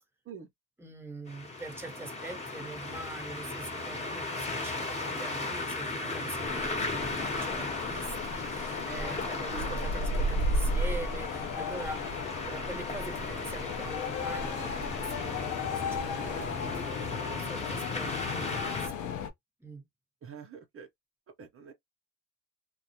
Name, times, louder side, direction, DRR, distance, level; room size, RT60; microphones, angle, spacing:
voice 1, 0.8-12.0 12.4-19.1 19.6-19.8, right 2 dB, 10° right, 0.9 m, -44 dB
sound 1, 1.3-18.9, left 2 dB, 20° left, 1.0 m, -36 dB
sound 2, 6.4-19.3, left 2 dB, 85° left, 0.6 m, -34 dB
voice 2, 20.2-20.9 21.4-21.7, right 5 dB, 45° right, 0.6 m, -45 dB
2.3 x 2.0 x 2.7 m
cardioid pair, 90°, 30 cm